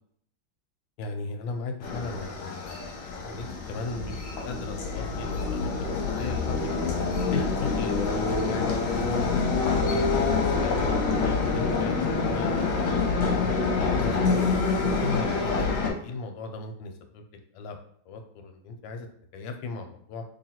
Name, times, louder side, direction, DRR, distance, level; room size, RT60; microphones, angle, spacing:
voice 1, 1.0-2.9 3.2-5.9 6.2-6.7 7.3-9.4 9.9-10.8 11.5-14.4 15.0-15.6 16.0-17.2 17.5-17.8 18.1-19.1 19.3-20.2, left 4 dB, 85° left, 5 dB, 1.4 m, -37 dB
sound 1, 1.8-15.9, left 4 dB, 60° left, 0.9 m, -26 dB
3.0 x 2.7 x 4.2 m, 0.64 s
omnidirectional pair, 2.0 m